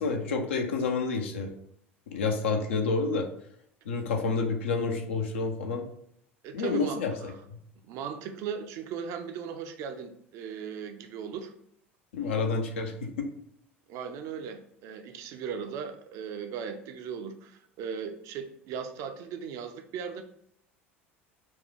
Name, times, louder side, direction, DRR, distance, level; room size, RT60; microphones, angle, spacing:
voice 1, 0.0-1.5 2.1-3.3 3.9-5.8 6.5-7.6 12.1-13.3, left 4 dB, 70° left, 3 dB, 0.6 m, -29 dB
voice 2, 6.4-7.0 7.8-11.5 13.9-20.2, right 7 dB, 45° right, 7 dB, 0.5 m, -37 dB
4.3 x 2.3 x 3.2 m, 0.71 s
figure-of-eight pair, 70°, 7 cm